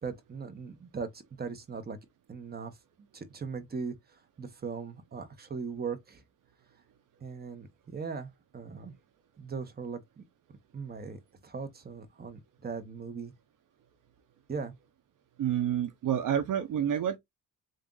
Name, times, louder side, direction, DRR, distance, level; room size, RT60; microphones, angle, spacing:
voice 1, 0.0-2.0 2.3-2.7 3.1-3.9 4.4-6.2 7.2-8.9 9.4-10.2 10.7-13.3 14.5-14.7, right 5 dB, 25° right, 1.0 m, -39 dB
voice 2, 15.4-17.2, right 9 dB, 65° right, 0.8 m, -28 dB
3.6 x 2.6 x 3.8 m
cardioid pair, 105°, 34 cm